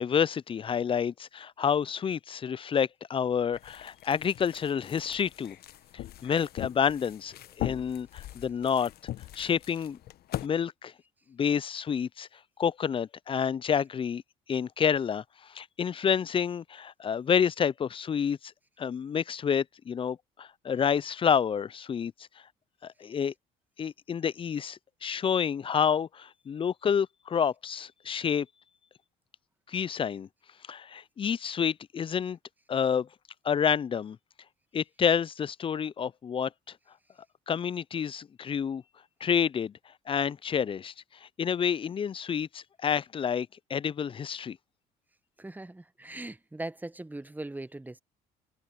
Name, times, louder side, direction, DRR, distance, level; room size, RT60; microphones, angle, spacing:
voice 1, 0.0-5.6 6.2-8.9 9.4-10.0 10.4-10.9 11.3-12.3 12.6-14.2 14.5-18.5 18.8-22.1 22.8-23.3 23.8-28.5 29.7-30.3 30.7-32.4 32.7-33.1 33.4-34.2 34.7-36.8 37.5-38.8 39.2-39.7 40.1-40.9 41.2-44.6, left 7 dB, 30° left, 0.4 m, -29 dB
sound 1, 3.5-10.5, left 14 dB, 65° left, 1.0 m, -40 dB
voice 2, 45.4-48.0, right 2 dB, 10° right, 0.9 m, -40 dB
supercardioid pair, 70°, 17 cm